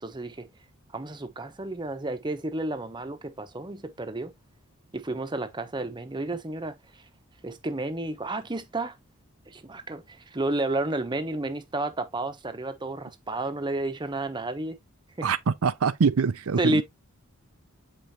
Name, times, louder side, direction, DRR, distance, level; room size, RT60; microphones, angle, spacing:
voice 1, 0.0-0.5 0.9-4.3 4.9-6.7 7.4-9.0 9.5-14.8 15.2-15.3 16.6-16.8, right 2 dB, 20° right, 0.9 m, -31 dB
voice 2, 15.2-16.8, right 5 dB, 75° right, 0.5 m, -24 dB
7.5 x 5.1 x 2.8 m
head